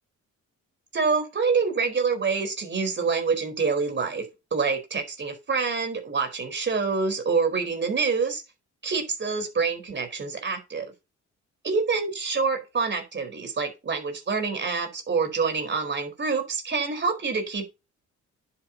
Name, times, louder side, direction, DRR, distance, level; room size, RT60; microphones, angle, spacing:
voice 1, 0.9-4.2 4.5-8.4 8.8-10.9 11.6-17.7, right 4 dB, 40° right, 5 dB, 4.5 m, -26 dB
10.0 x 8.5 x 2.9 m, 0.25 s
cardioid pair, 90°, 30 cm